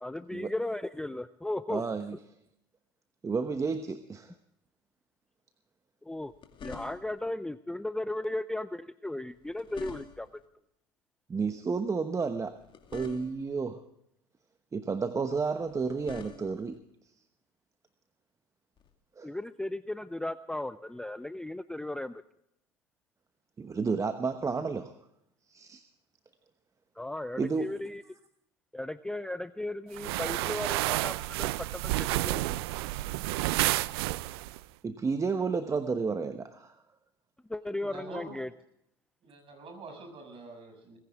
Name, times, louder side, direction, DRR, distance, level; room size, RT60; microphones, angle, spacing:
voice 1, 0.0-1.8 6.1-6.3 6.6-10.3 19.2-22.2 27.0-28.0 28.7-32.4 37.5-38.5, left 1 dB, 5° left, 14 dB, 0.5 m, -36 dB
voice 2, 1.7-2.2 3.2-4.3 11.3-12.6 12.9-13.8 14.7-16.8 19.2-19.3 23.6-24.9 25.5-25.8 27.4-27.7 34.8-36.7, right 4 dB, 25° right, 9 dB, 1.1 m, -31 dB
sound 1, 6.1-7.3 9.3-10.5 12.5-13.6 15.6-16.8 18.8-18.9, left 6 dB, 35° left, 2.4 m, -48 dB
sound 2, 29.9-34.6, right 18 dB, 70° right, 0.5 m, -30 dB
voice 3, 37.7-38.4 39.2-41.0, right 3 dB, 40° right, 4 dB, 6.8 m, -46 dB
19.5 x 16.0 x 3.5 m, 0.78 s
hypercardioid pair, 75°, 13 cm